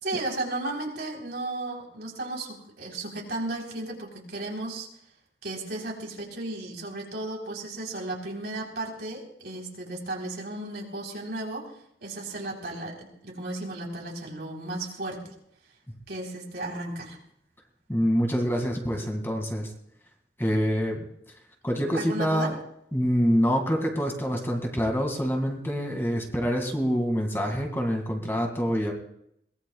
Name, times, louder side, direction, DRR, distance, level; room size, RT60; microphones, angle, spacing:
voice 1, 0.0-4.9 5.4-11.7 12.0-15.3 16.1-17.2 21.9-22.5, right 2 dB, 70° right, -1 dB, 3.8 m, -34 dB
voice 2, 17.9-19.7 20.4-21.0 21.6-22.5 22.9-28.9, equal, 15° left, 2 dB, 2.1 m, -26 dB
22.0 x 19.5 x 2.4 m, 0.74 s
head